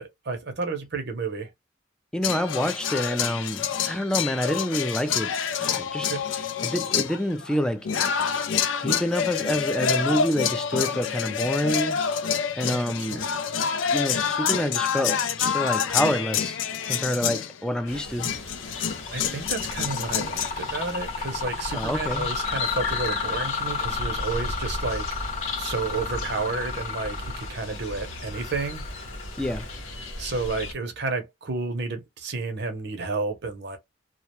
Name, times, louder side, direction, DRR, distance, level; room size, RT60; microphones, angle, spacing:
voice 1, 0.0-1.5 6.1-6.2 12.7-13.3 18.7-25.1 25.6-28.8 30.0-33.8, right 3 dB, 60° right, 0.7 m, -31 dB
voice 2, 2.1-6.1 6.6-7.9 8.8-12.0 12.6-13.2 13.9-16.6 16.9-18.3 21.7-22.3 29.4-29.7, equal, 5° left, 0.3 m, -27 dB
sound 1, 2.2-20.5, left 7 dB, 70° left, 0.4 m, -27 dB
sound 2, 17.9-30.7, left 2 dB, 90° left, 0.8 m, -36 dB
Mechanisms, 18.7-19.1 19.4-30.0, left 5 dB, 40° left, 0.9 m, -33 dB
2.4 x 2.2 x 2.9 m
head